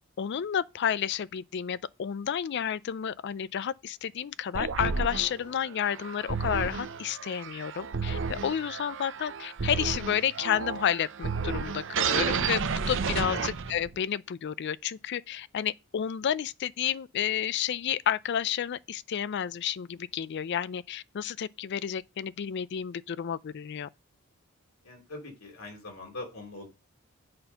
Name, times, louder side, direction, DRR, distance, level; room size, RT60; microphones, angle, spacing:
voice 1, 0.2-23.9, left 9 dB, 55° left, 0.4 m, -31 dB
sound 1, 4.5-14.0, right 5 dB, 65° right, 0.7 m, -32 dB
voice 2, 24.8-26.7, left 2 dB, 90° left, 2.9 m, -42 dB
7.6 x 4.3 x 5.7 m
head